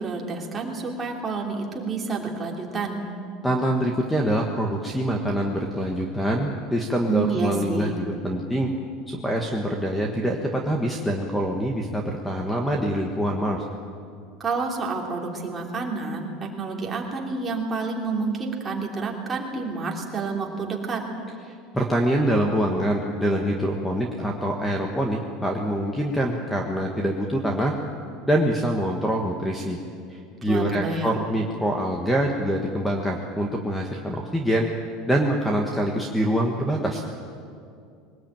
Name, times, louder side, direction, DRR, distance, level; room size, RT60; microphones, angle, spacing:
voice 1, 0.0-3.0 7.1-7.9 14.4-21.0 30.5-31.2, right 4 dB, 15° right, -1 dB, 3.1 m, -29 dB
voice 2, 3.4-8.7 9.1-13.6 21.7-27.7 28.3-29.8 30.1-34.7 35.1-37.0, equal, 5° left, 1 dB, 1.5 m, -25 dB
21.5 x 19.0 x 9.0 m, 2.3 s
cardioid pair, 165°, 0 cm